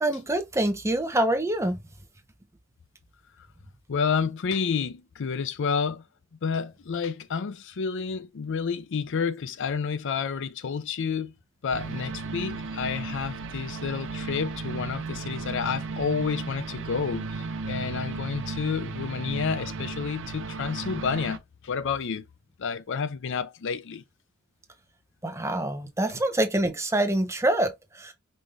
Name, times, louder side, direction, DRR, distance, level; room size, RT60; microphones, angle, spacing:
voice 1, 0.0-1.8 25.2-28.1, right 1 dB, 15° right, 0.8 m, -26 dB
voice 2, 3.9-6.0 6.4-11.3 11.6-22.3 22.6-24.0, left 6 dB, 60° left, 0.5 m, -30 dB
sound 1, 11.7-21.4, right 4 dB, 60° right, 0.5 m, -35 dB
5.3 x 2.6 x 3.3 m
head